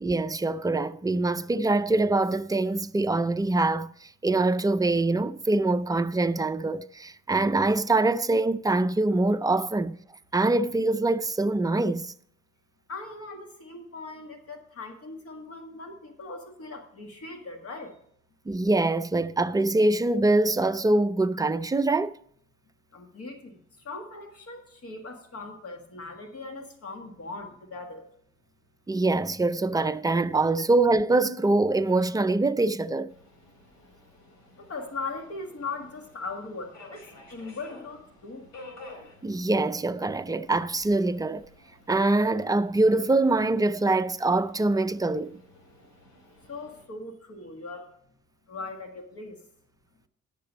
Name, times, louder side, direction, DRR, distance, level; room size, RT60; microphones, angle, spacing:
voice 1, 0.0-10.0 10.3-12.1 18.5-22.2 28.9-33.1 39.2-41.5 41.9-45.4, right 2 dB, 10° right, 0.4 m, -24 dB
voice 2, 12.9-18.0 22.9-28.1 34.6-38.5 46.5-47.9 48.5-49.4, left 3 dB, 50° left, 1.6 m, -39 dB
Subway metro underground, 33.1-46.9, left 2 dB, 75° left, 4.2 m, -52 dB
10.0 x 6.8 x 5.3 m
cardioid pair, 90°, 30 cm